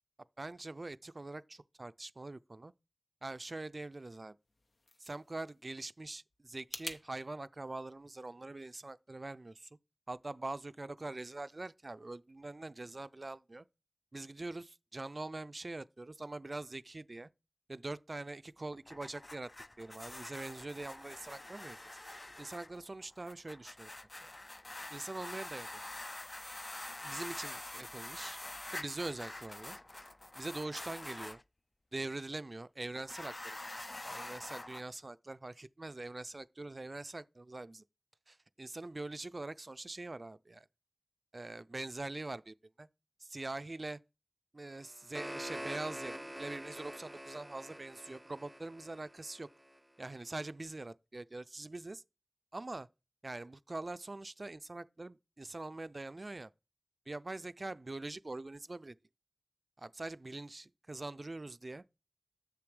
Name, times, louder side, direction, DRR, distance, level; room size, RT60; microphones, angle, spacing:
voice 1, 0.4-2.7 3.2-4.4 5.0-9.7 10.1-13.7 14.1-17.3 17.7-19.5 19.8-21.8 22.2-23.9 24.2-24.4 24.9-25.8 27.0-28.4 28.7-29.8 30.4-31.4 31.9-37.8 38.3-40.7 41.3-42.9 43.2-44.0 44.5-49.5 50.0-52.0 52.5-52.9 53.2-56.5 57.1-59.0 59.8-61.8, right 2 dB, 55° right, 0.3 m, -43 dB
sound 1, 4.4-7.0, left 2 dB, 80° left, 0.8 m, -48 dB
sound 2, 18.7-31.4 33.0-34.8, left 1 dB, 40° left, 0.4 m, -46 dB
sound 3, 44.7-49.8, equal, 5° right, 0.7 m, -46 dB
7.2 x 6.9 x 3.3 m
wide cardioid pair, 40°, 0 cm